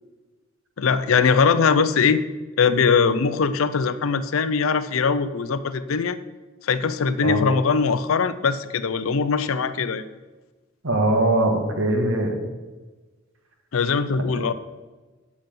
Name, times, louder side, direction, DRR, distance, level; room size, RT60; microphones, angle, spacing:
voice 1, 0.8-2.2 2.6-6.2 6.6-10.0 13.7-14.5, left 5 dB, 80° left, 13 dB, 0.5 m, -21 dB
voice 2, 10.8-12.4 14.3-14.5, right 1 dB, 75° right, 4 dB, 1.3 m, -21 dB
7.7 x 7.1 x 5.2 m, 1.3 s
head